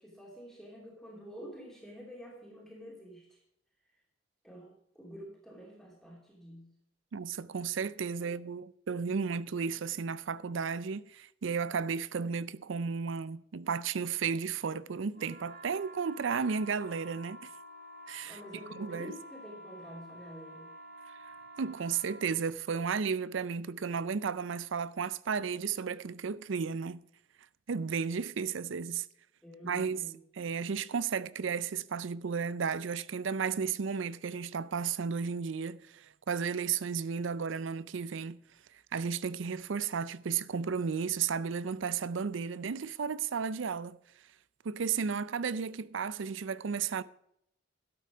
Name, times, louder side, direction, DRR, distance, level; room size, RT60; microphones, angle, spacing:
voice 1, 0.0-3.4 4.4-6.7 8.2-8.3 18.2-20.7 29.4-30.2, equal, ahead, 2.9 m, -48 dB
voice 2, 7.1-17.5 18.1-18.4 18.7-19.1 21.6-27.0 27.7-29.1 29.6-30.1 30.4-38.4 38.9-44.0 44.6-47.0, right 6 dB, 70° right, 0.5 m, -33 dB
sound 1, 15.1-22.4, equal, 45° right, 1.6 m, -50 dB
12.0 x 8.3 x 5.0 m
head